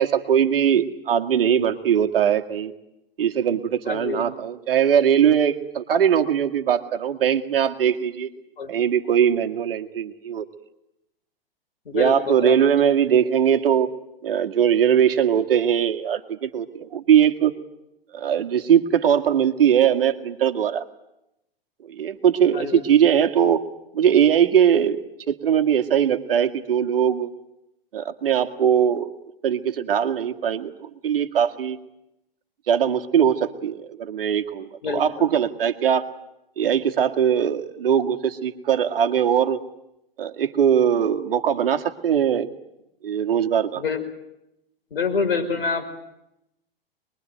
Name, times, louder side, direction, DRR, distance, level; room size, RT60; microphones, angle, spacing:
voice 1, 0.0-2.7 3.2-8.3 8.7-10.5 11.9-13.9 14.2-17.5 18.1-20.8 21.8-23.6 23.9-25.0 25.3-27.3 27.9-29.1 29.4-31.8 32.7-36.1 36.6-39.6 40.2-42.5 43.0-43.8, right 8 dB, 70° right, 6 dB, 2.1 m, -20 dB
voice 2, 3.9-4.2 8.6-8.7 11.9-12.9 22.5-22.8 34.8-35.3 43.7-44.0 44.9-45.9, left 5 dB, 75° left, 5 dB, 5.6 m, -27 dB
24.5 x 22.0 x 9.3 m, 0.86 s
hypercardioid pair, 110°, 30 cm